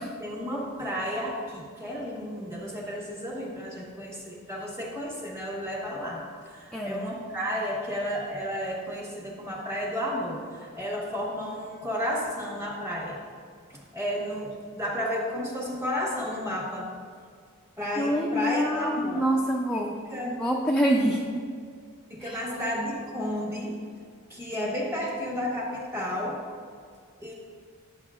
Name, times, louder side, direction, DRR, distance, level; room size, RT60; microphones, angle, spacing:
voice 1, 0.0-13.2 13.7-16.9 17.8-19.2 19.7-20.4 22.1-23.8 24.3-26.4 27.2-27.3, equal, 10° right, -3 dB, 1.3 m, -32 dB
voice 2, 6.7-7.1 18.0-20.0 20.2-21.5 22.2-22.4, equal, 5° left, -3 dB, 0.4 m, -26 dB
10.5 x 6.8 x 2.4 m, 2.2 s
head